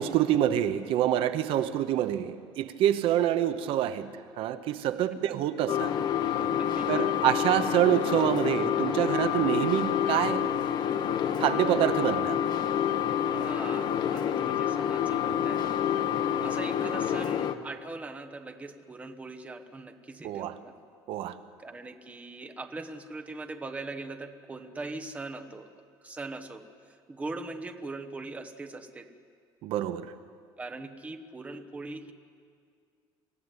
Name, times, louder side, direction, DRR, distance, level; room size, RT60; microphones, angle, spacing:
voice 1, 0.0-5.9 6.9-10.5 11.4-12.4 20.2-20.6 21.1-21.4 29.6-30.1, right 11 dB, 65° right, 12 dB, 0.9 m, -26 dB
sound 1, 5.7-17.6, left 9 dB, 45° left, 1.0 m, -28 dB
voice 2, 6.6-7.1 13.3-15.8 16.4-20.7 21.6-25.7 26.0-29.1 30.6-32.1, right 3 dB, 15° right, 6 dB, 1.2 m, -41 dB
26.5 x 14.5 x 9.8 m, 2.2 s
cardioid pair, 175°, 10 cm